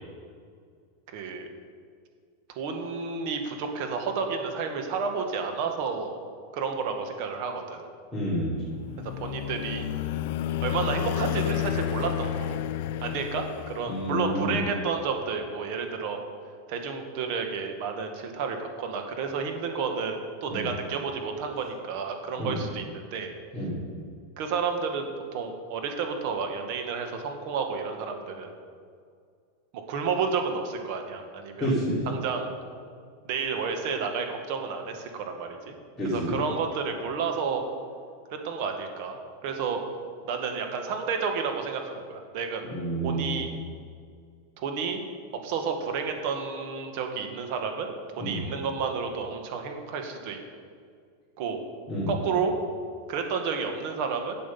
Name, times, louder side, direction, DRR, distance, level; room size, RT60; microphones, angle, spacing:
voice 1, 1.1-1.5 2.5-6.2 6.5-7.8 9.2-9.8 10.6-12.6 13.0-16.2 16.7-23.3 24.4-28.5 29.7-31.7 32.1-32.5 33.2-35.7 36.0-37.6 38.3-39.8 40.2-42.6 43.0-43.5 44.6-45.0 45.4-47.9 48.2-50.4 51.4-51.6 52.1-52.5 53.1-54.4, right 5 dB, 55° right, 4 dB, 1.6 m, -31 dB
voice 2, 8.1-8.5 13.9-14.6 20.5-20.7 22.4-22.6 23.5-23.7 31.6-32.0 36.0-36.4 42.6-43.3 48.2-48.4 51.9-52.1, equal, 10° left, -11 dB, 3.3 m, -29 dB
sound 1, 8.6-14.4, left 10 dB, 60° left, 0.4 m, -31 dB
11.5 x 7.7 x 5.4 m, 2.1 s
supercardioid pair, 145°, 0 cm